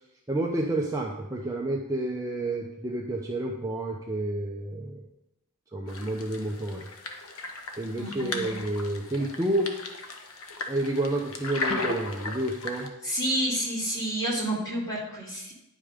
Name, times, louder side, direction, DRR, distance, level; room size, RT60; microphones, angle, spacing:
voice 1, 0.3-5.1 5.7-6.9 7.8-9.7 10.7-12.9, right 1 dB, 15° right, -1 dB, 0.7 m, -30 dB
sound 1, 5.9-12.9, left 2 dB, 70° left, 1.1 m, -36 dB
voice 2, 8.0-8.4 13.0-15.5, right 1 dB, 20° left, -4 dB, 2.5 m, -29 dB
10.0 x 5.2 x 5.1 m, 0.91 s
head